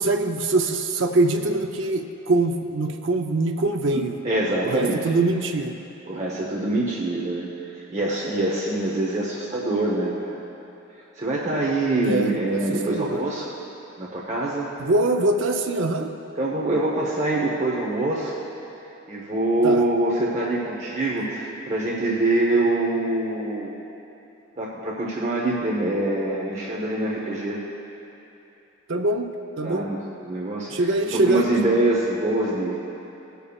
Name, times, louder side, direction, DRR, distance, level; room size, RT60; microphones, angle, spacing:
voice 1, 0.0-4.2 4.6-5.7 12.0-12.6 12.9-13.2 14.8-16.1 19.6-19.8 28.9-29.3 29.6-29.9 30.7-31.4, right 2 dB, 60° right, 5 dB, 0.6 m, -23 dB
voice 2, 3.9-5.0 6.1-10.5 11.2-13.5 14.0-14.7 16.4-18.3 19.1-23.7 24.6-27.6 29.6-33.0, right 2 dB, 30° right, -5 dB, 0.9 m, -25 dB
20.0 x 6.8 x 2.4 m, 2.9 s
head